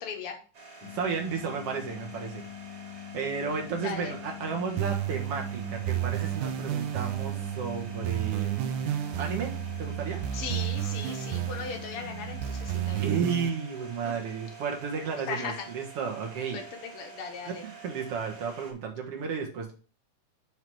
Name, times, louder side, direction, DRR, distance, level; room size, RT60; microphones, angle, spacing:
voice 1, 0.0-0.4 3.8-4.1 10.3-13.0 14.0-14.1 15.2-15.7 16.5-16.6 17.0-17.6, left 6 dB, 55° left, 4 dB, 1.8 m, -37 dB
sound 1, 0.5-18.7, right 4 dB, 30° right, 2.0 m, -48 dB
sound 2, 0.8-13.3, left 14 dB, 90° left, 3.8 m, -44 dB
voice 2, 0.8-2.5 2.9-8.8 9.2-9.5 9.8-10.2 13.0-16.6 17.4-19.7, right 6 dB, 55° right, 2 dB, 2.1 m, -33 dB
sound 3, 4.8-13.5, right 14 dB, 80° right, 2.1 m, -32 dB
9.6 x 4.0 x 4.7 m, 0.37 s
omnidirectional pair, 3.8 m